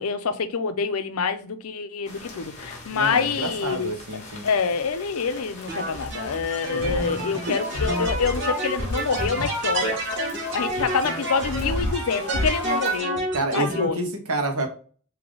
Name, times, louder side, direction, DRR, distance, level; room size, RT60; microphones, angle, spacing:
voice 1, 0.0-3.9 4.4-10.0 10.5-13.2 13.5-14.0, left 5 dB, 80° left, 0.5 m, -26 dB
sound 1, 2.1-13.0, left 2 dB, 30° left, 1.1 m, -43 dB
voice 2, 2.9-4.5 6.7-7.2 7.5-7.6 13.3-14.7, right 2 dB, 80° right, 1.0 m, -28 dB
sound 2, 5.7-13.9, right 1 dB, 55° right, 1.1 m, -28 dB
3.8 x 2.8 x 3.2 m
head